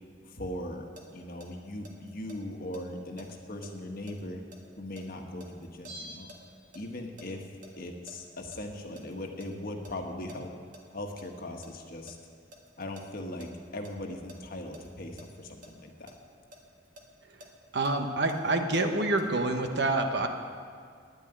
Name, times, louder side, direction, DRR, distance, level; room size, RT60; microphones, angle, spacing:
voice 1, 0.2-0.8 1.1-4.4 4.8-6.3 6.7-10.5 10.9-12.2 12.8-16.1, left 1 dB, 50° left, 3 dB, 1.4 m, -39 dB
sound 1, 1.0-6.8 7.2-9.5 9.8-9.9 10.3-10.8 11.2-14.4 14.7-14.9 15.2-15.3 15.6-15.7 16.1-18.8 19.2-19.3, left 1 dB, 45° right, 1.5 m, -51 dB
Bell, 5.9-7.3 7.5-7.6, equal, 90° right, 4.4 m, -47 dB
voice 2, 17.7-20.3, right 2 dB, 65° right, 5 dB, 1.2 m, -27 dB
10.0 x 9.7 x 9.4 m, 2.1 s
head